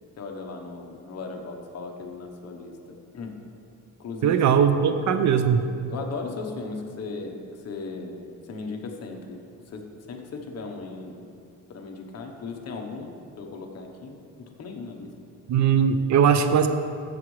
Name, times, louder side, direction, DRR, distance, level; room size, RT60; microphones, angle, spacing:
voice 1, 0.2-3.4 4.0-4.4 5.9-11.2 11.7-15.1, left 4 dB, 45° left, 2 dB, 1.0 m, -37 dB
voice 2, 4.2-5.6 15.5-16.7, right 7 dB, 55° right, 9 dB, 0.5 m, -20 dB
13.0 x 7.1 x 3.2 m, 2.5 s
cardioid pair, 155°, 34 cm